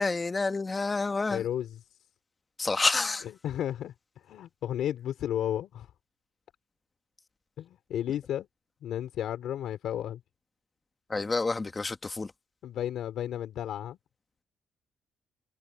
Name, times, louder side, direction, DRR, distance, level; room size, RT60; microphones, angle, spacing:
voice 1, 0.0-1.4 2.6-3.2 11.1-12.3, left 3 dB, 25° left, 1.4 m, -28 dB
voice 2, 1.3-1.8 3.2-3.9 4.2-5.9 7.6-8.5 8.8-10.2 12.6-14.0, left 11 dB, 75° left, 4.0 m, -33 dB
cardioid pair, 120°, 0 cm